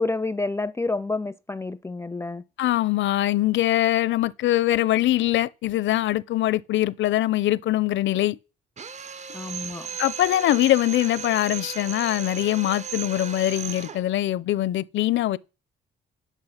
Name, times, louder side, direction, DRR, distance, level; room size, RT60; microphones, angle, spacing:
voice 1, 0.0-2.4 9.3-9.9, left 3 dB, 15° left, 0.4 m, -29 dB
voice 2, 2.6-8.4 10.0-15.4, left 14 dB, 70° left, 0.6 m, -23 dB
Drill, 8.8-14.1, right 7 dB, 35° right, 0.6 m, -36 dB
9.9 x 5.9 x 5.7 m
cardioid pair, 90°, 20 cm